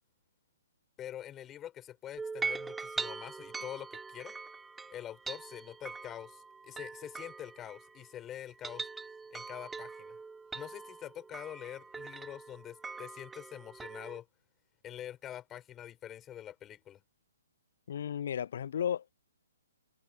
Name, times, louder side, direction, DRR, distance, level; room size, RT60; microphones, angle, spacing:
voice 1, 1.0-4.3 4.9-8.9 9.3-10.2 10.5-14.3 14.8-17.0, left 11 dB, 20° left, 5.5 m, -45 dB
sound 1, 2.2-8.1 8.5-14.2, right 4 dB, 10° right, 3.5 m, -42 dB
voice 2, 17.9-19.1, left 9 dB, 55° left, 0.4 m, -34 dB
figure-of-eight pair, 125°, 0 cm